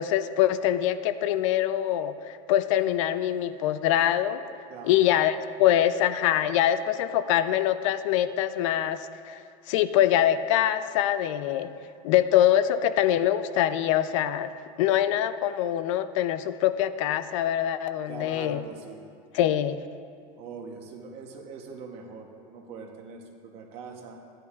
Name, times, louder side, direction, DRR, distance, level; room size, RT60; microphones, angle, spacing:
voice 1, 0.0-4.4 4.8-9.4 9.7-11.8 12.0-14.5 14.8-18.6 19.3-19.8, left 11 dB, 75° left, 12 dB, 0.5 m, -24 dB
voice 2, 4.7-5.0 18.1-19.1 20.4-24.2, right 5 dB, 40° right, 3 dB, 0.9 m, -42 dB
13.5 x 10.5 x 2.4 m, 2.4 s
cardioid pair, 180°, 17 cm